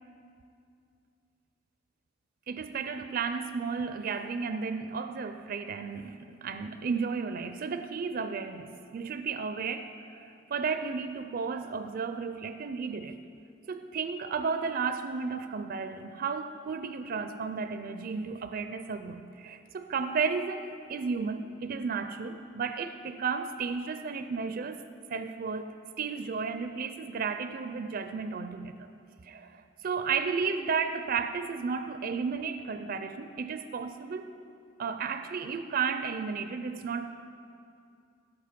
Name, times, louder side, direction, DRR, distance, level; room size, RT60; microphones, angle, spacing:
voice 1, 2.5-13.2 13.7-24.8 25.1-28.9 29.3-34.4 34.8-37.1, right 5 dB, 50° right, 9 dB, 0.4 m, -33 dB
16.5 x 7.1 x 5.1 m, 2.5 s
head